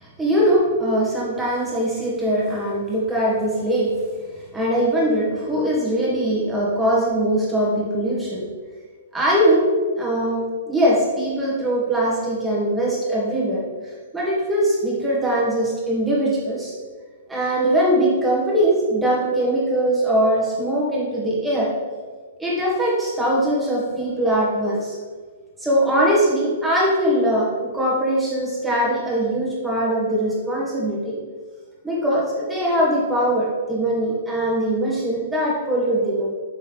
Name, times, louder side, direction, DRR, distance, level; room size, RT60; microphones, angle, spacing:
voice 1, 0.0-4.0 4.5-8.5 9.1-13.7 14.1-16.7 17.3-21.7 22.4-25.0 25.6-31.2 31.8-36.3, right 1 dB, 5° right, -6 dB, 2.1 m, -21 dB
6.8 x 5.9 x 3.5 m, 1.5 s
figure-of-eight pair, 110°, 0 cm